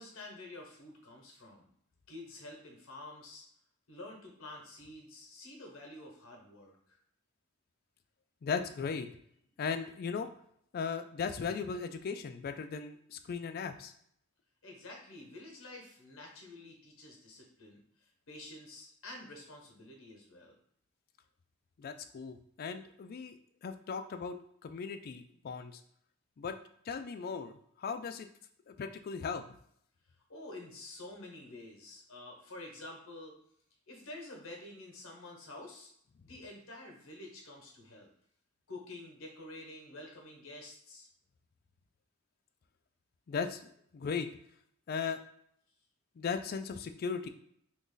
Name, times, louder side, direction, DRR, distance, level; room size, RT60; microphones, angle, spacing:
voice 1, 0.0-1.7 2.1-3.4 3.9-7.0 14.6-20.5 30.3-33.4 33.9-35.9 36.2-38.1 38.7-41.1, left 2 dB, 80° left, 1 dB, 1.1 m, -49 dB
voice 2, 8.4-9.1 9.6-10.3 10.7-13.9 21.8-23.4 23.6-24.4 24.6-25.8 26.4-26.6 26.9-28.3 28.7-29.4 43.3-44.3 44.9-45.2 46.2-47.3, left 5 dB, 45° left, 9 dB, 0.3 m, -37 dB
3.0 x 2.6 x 3.8 m, 0.68 s
head